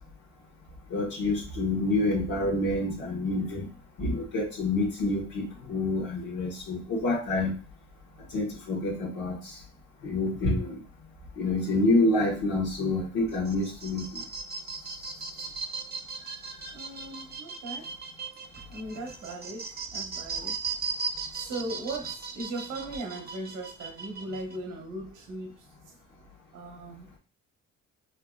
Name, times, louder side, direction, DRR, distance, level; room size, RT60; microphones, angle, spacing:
voice 1, 0.9-3.7 4.0-7.6 8.3-9.6 10.0-10.8 11.4-14.2, left 2 dB, 85° left, -6 dB, 1.3 m, -27 dB
sound 1, 13.3-24.6, right 5 dB, 30° right, 0.6 m, -37 dB
voice 2, 16.7-17.9 18.7-20.6 21.3-25.6 26.5-27.2, right 2 dB, 85° right, 2 dB, 1.1 m, -38 dB
5.6 x 2.6 x 2.3 m, 0.36 s
cardioid pair, 90°, 30 cm